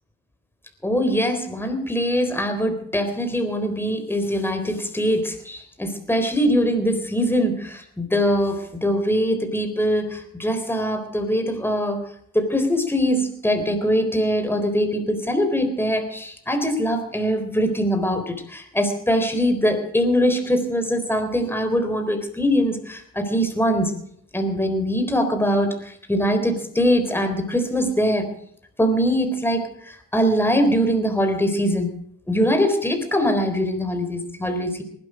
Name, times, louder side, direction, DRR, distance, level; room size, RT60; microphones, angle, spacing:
voice 1, 0.8-12.0 12.3-23.9 24.3-28.3 28.8-31.9 32.3-34.8, equal, 5° left, 6 dB, 3.9 m, -22 dB
19.5 x 12.0 x 5.0 m, 0.67 s
cardioid pair, 90°, 30 cm